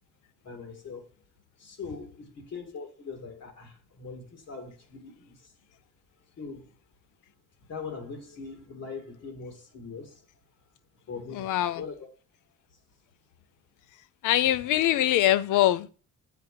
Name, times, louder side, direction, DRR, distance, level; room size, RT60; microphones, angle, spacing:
voice 1, 0.4-1.0 1.6-5.5 6.4-6.7 7.7-10.2 11.1-12.1, left 4 dB, 60° left, 2.3 m, -41 dB
voice 2, 11.3-11.8 14.2-15.9, left 13 dB, 80° left, 0.6 m, -23 dB
7.8 x 5.0 x 4.9 m
cardioid pair, 90°, 30 cm